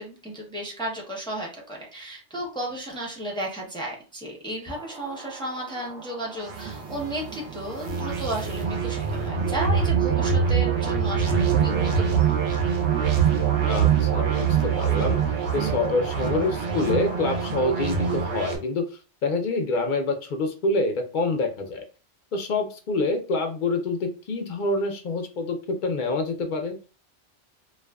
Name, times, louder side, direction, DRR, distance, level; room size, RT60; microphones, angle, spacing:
voice 1, 0.0-12.4, right 1 dB, 5° left, -2 dB, 0.4 m, -34 dB
sound 1, 4.7-18.6, right 7 dB, 70° right, 0.9 m, -24 dB
voice 2, 13.6-18.8 19.2-21.8 22.3-26.8, left 2 dB, 60° left, 4 dB, 0.5 m, -26 dB
2.4 x 2.3 x 2.2 m, 0.34 s
omnidirectional pair, 1.2 m